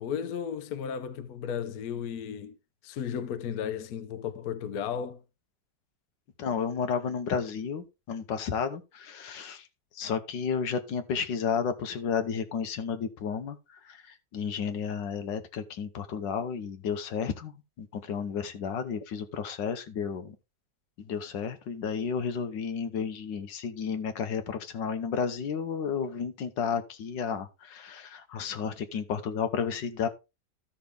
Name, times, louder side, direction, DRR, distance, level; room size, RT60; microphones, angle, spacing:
voice 1, 0.0-2.6 2.8-5.2, left 8 dB, 60° left, 1.2 m, -34 dB
voice 2, 6.4-9.7 9.9-20.4 21.0-30.1, left 6 dB, 85° left, 1.7 m, -32 dB
13.5 x 5.9 x 3.5 m
omnidirectional pair, 1.9 m